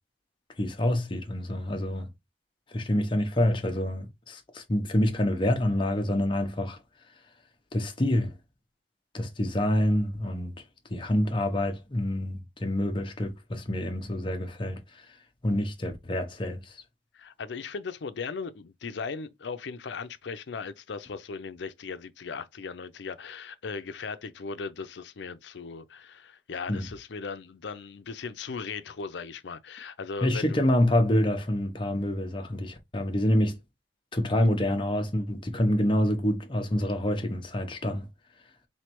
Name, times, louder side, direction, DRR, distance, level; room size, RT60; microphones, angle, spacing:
voice 1, 0.6-2.1 2.7-6.8 7.7-8.3 9.1-10.5 10.9-15.1 15.4-16.8 26.7-26.8 30.2-33.6 34.1-38.1, left 1 dB, 25° left, 0.7 m, -27 dB
voice 2, 17.1-30.6, left 5 dB, 75° left, 0.5 m, -38 dB
4.0 x 3.2 x 3.0 m
head